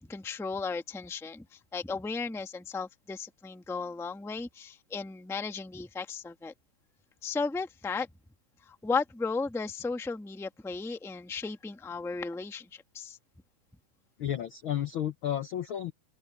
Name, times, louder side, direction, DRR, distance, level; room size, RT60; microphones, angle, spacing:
voice 1, 0.0-6.5 7.2-8.1 8.7-13.2, left 4 dB, ahead, 0.8 m, -35 dB
voice 2, 14.2-15.9, left 11 dB, 70° left, 1.2 m, -32 dB
omnidirectional pair, 3.5 m